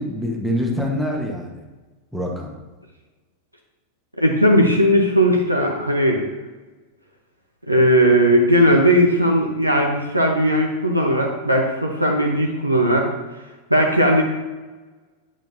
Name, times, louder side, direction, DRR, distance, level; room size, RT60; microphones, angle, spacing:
voice 1, 0.0-1.6 2.1-2.5, equal, 5° right, 0 dB, 1.3 m, -25 dB
voice 2, 4.2-6.2 7.7-13.1 13.7-14.2, equal, 85° right, 1 dB, 1.0 m, -17 dB
8.8 x 7.5 x 2.7 m, 1.2 s
figure-of-eight pair, 90°, 0 cm